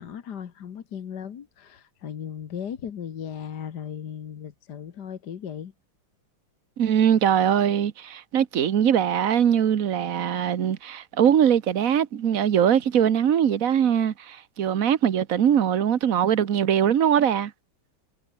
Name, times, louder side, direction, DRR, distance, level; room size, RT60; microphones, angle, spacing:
voice 1, 0.0-5.7, left 8 dB, 55° left, 1.8 m, -36 dB
voice 2, 6.8-17.5, right 9 dB, 50° right, 1.3 m, -21 dB
omnidirectional pair, 2.3 m